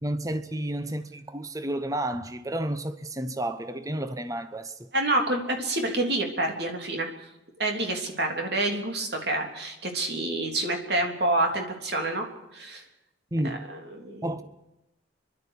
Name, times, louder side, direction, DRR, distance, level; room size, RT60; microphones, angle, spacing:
voice 1, 0.0-4.9 13.3-13.6 14.2-14.4, right 1 dB, 20° right, 0.9 m, -31 dB
voice 2, 4.9-7.1 7.6-12.3 12.5-12.8 13.4-14.3, right 2 dB, 55° right, 3.4 m, -28 dB
30.0 x 12.0 x 8.4 m
head